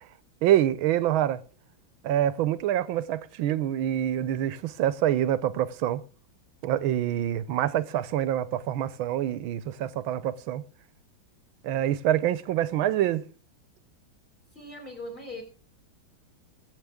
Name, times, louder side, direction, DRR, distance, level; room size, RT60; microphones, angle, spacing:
voice 1, 0.4-1.4 2.0-6.0 6.6-10.6 11.6-13.3, right 12 dB, 80° right, 1.5 m, -26 dB
voice 2, 14.5-15.4, left 1 dB, 20° left, 4.5 m, -39 dB
21.5 x 7.9 x 3.6 m
omnidirectional pair, 2.2 m